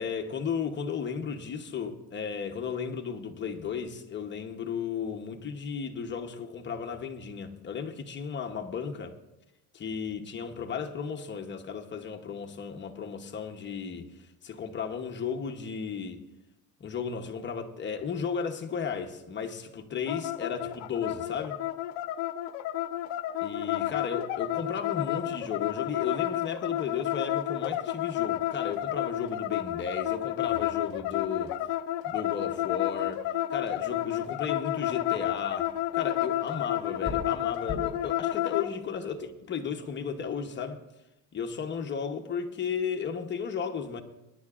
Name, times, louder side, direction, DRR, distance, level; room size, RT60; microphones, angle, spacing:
voice 1, 0.0-9.2 9.7-16.2 16.8-21.6 23.4-31.6 32.0-40.8 41.3-44.0, left 6 dB, 25° left, 0.9 m, -34 dB
sound 1, 20.1-38.7, left 13 dB, 80° left, 0.7 m, -31 dB
sound 2, 35.6-40.0, left 3 dB, 10° right, 3.1 m, -44 dB
23.5 x 10.5 x 2.5 m
cardioid pair, 150°, 41 cm